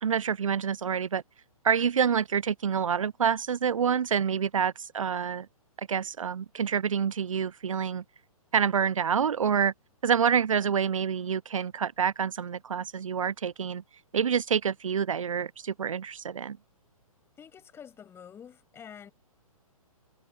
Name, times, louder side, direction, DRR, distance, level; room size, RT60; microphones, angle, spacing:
voice 1, 0.0-1.2 1.6-5.5 5.9-8.0 8.5-9.7 10.0-13.8 14.1-16.6, right 7 dB, 60° right, 0.7 m, -27 dB
voice 2, 17.4-19.1, left 8 dB, 15° left, 5.8 m, -48 dB
figure-of-eight pair, 125°, 19 cm